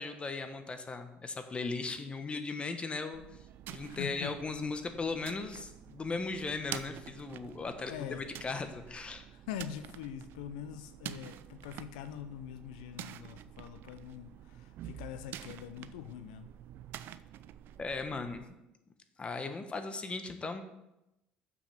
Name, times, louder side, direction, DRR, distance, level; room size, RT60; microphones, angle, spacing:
voice 1, 0.0-3.2 3.7-9.2 17.8-18.5 19.2-20.6, left 3 dB, 25° left, 8 dB, 1.1 m, -37 dB
sound 1, 3.1-18.4, right 11 dB, 60° right, 0.4 m, -48 dB
voice 2, 3.9-4.3 7.9-8.2 9.3-16.5, left 10 dB, 85° left, 10 dB, 0.5 m, -43 dB
7.0 x 6.0 x 5.7 m, 0.91 s
supercardioid pair, 80°, 4 cm